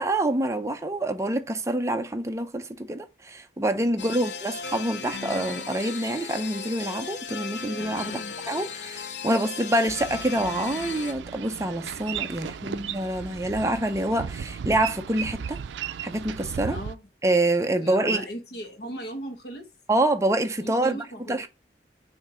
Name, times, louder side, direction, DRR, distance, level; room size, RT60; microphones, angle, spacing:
voice 1, 0.0-8.2 8.5-15.6 16.0-16.8 17.2-18.2 19.9-21.5, right 1 dB, 15° right, 0.6 m, -26 dB
voice 2, 3.9-4.3 8.0-8.3 12.2-13.0 16.7-17.1 17.8-19.7 20.6-21.4, equal, 60° left, 1.2 m, -39 dB
sound 1, 4.0-11.1, left 5 dB, 85° left, 0.8 m, -36 dB
Boat Water vehicle, 9.9-16.9, right 7 dB, 85° right, 0.4 m, -36 dB
7.1 x 2.7 x 4.8 m
head